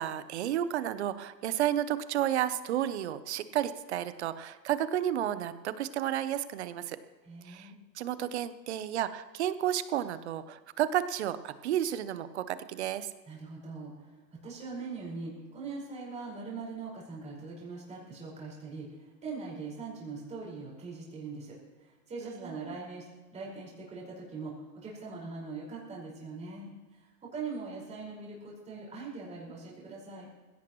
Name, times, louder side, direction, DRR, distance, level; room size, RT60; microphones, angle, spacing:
voice 1, 0.0-7.0 7.4-13.1 22.2-22.5, right 11 dB, 40° right, 13 dB, 0.8 m, -32 dB
voice 2, 7.2-7.8 13.3-23.1 23.3-30.3, right 4 dB, 15° right, -4 dB, 5.2 m, -42 dB
20.0 x 16.5 x 3.1 m, 1.3 s
hypercardioid pair, 150°, 50 cm